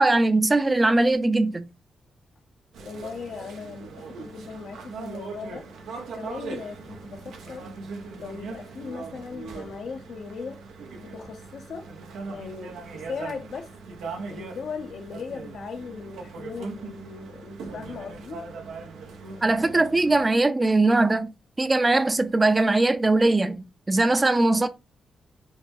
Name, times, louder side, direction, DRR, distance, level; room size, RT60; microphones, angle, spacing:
voice 1, 0.0-1.6 19.4-21.3 21.6-24.7, right 2 dB, 25° right, 0.5 m, -21 dB
sound 1, 2.7-20.2, right 4 dB, 90° right, 0.8 m, -40 dB
voice 2, 2.8-5.7 6.1-7.7 8.2-10.6 11.0-11.9 12.3-13.7 14.3-18.4 19.4-19.5, left 5 dB, 70° left, 0.8 m, -38 dB
4.7 x 2.3 x 2.6 m
cardioid pair, 70°, 0 cm